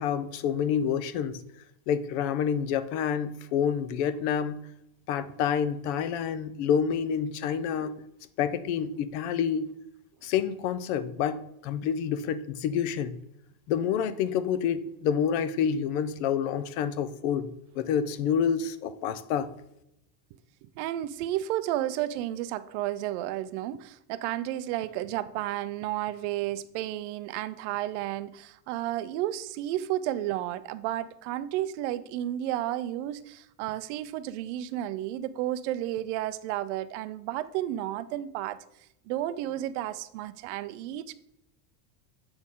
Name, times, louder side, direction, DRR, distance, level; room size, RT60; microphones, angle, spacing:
voice 1, 0.0-1.4 1.9-4.6 5.1-7.9 8.4-9.7 10.2-13.2 13.7-17.5 17.7-19.5, left 8 dB, 45° left, 14 dB, 0.5 m, -28 dB
voice 2, 20.8-38.6 39.1-41.1, right 13 dB, 50° right, 14 dB, 0.5 m, -32 dB
7.8 x 6.2 x 3.7 m, 0.82 s
cardioid pair, 180°, 46 cm